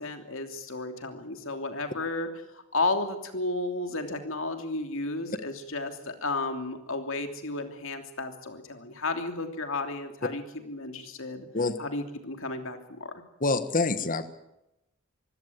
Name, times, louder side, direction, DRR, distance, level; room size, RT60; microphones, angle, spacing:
voice 1, 0.0-2.3 2.5-11.5 11.8-13.2, left 2 dB, 60° left, 6 dB, 3.0 m, -33 dB
voice 2, 13.4-14.2, left 3 dB, 40° left, 11 dB, 1.4 m, -26 dB
24.5 x 16.0 x 9.6 m, 0.92 s
head